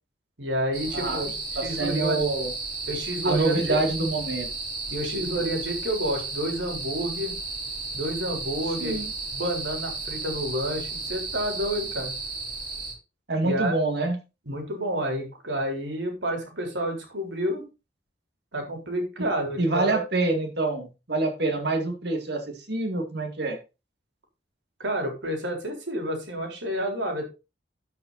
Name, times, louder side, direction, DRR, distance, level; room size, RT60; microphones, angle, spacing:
voice 1, 0.4-1.3 1.6-2.2 2.9-3.8 4.3-4.5 4.9-7.4 7.9-9.0 9.3-12.2 13.4-13.7 14.5-17.6 18.5-20.0 24.8-27.2, right 1 dB, 85° right, 3 dB, 3.8 m, -29 dB
sound 1, 0.7-12.9, right 3 dB, 45° right, 7.0 m, -34 dB
voice 2, 0.9-1.2 1.5-2.5 3.2-4.5 8.8-9.1 13.3-14.2 19.2-19.3 19.6-23.6, right 2 dB, 65° right, 3 dB, 2.3 m, -26 dB
12.5 x 5.8 x 4.1 m, 0.29 s
head